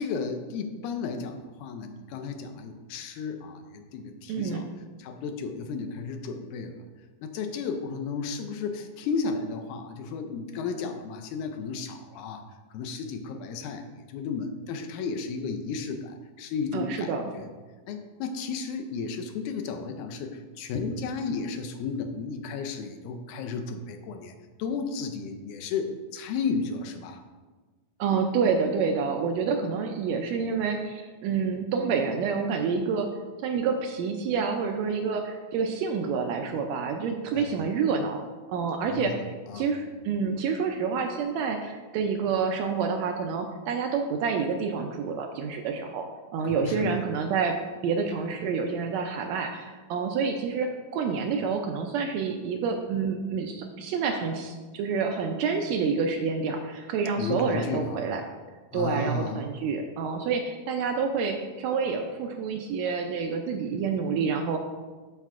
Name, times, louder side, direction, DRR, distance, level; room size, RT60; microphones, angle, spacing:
voice 1, 0.0-4.7 5.0-6.8 7.2-12.4 12.7-17.1 17.3-17.5 17.9-24.3 24.6-27.2 37.3-37.5 38.8-39.2 39.5-39.7 46.4-47.0 57.2-58.0 58.7-59.4, left 4 dB, 80° left, 6 dB, 2.0 m, -33 dB
voice 2, 4.3-4.6 16.7-17.2 28.0-33.1 33.4-38.2 38.5-46.1 46.3-47.6 47.8-58.2 58.7-64.6, right 5 dB, 80° right, 4 dB, 1.6 m, -28 dB
12.0 x 4.4 x 2.4 m, 1.3 s
omnidirectional pair, 3.5 m